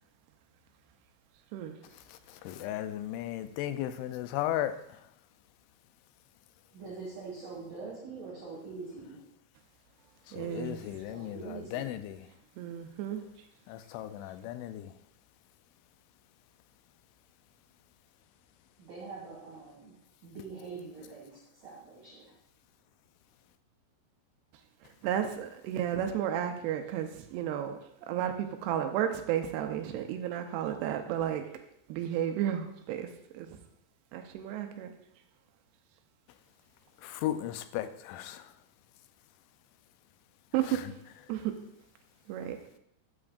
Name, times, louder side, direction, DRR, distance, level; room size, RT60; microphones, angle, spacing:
voice 1, 2.1-4.7 10.3-12.2 13.7-14.9 37.0-38.5, left 12 dB, 90° left, 11 dB, 3.0 m, -35 dB
voice 2, 6.7-9.2 11.1-12.0 18.8-20.0 20.2-22.4, right 4 dB, 55° right, -5 dB, 2.6 m, -44 dB
voice 3, 10.3-11.0 12.6-13.2 25.0-27.8 28.1-31.4 31.9-33.5 34.1-34.9 40.5-40.8 41.3-41.5 42.3-42.6, right 10 dB, 80° right, 6 dB, 2.5 m, -32 dB
12.0 x 8.9 x 2.5 m, 0.75 s
omnidirectional pair, 5.3 m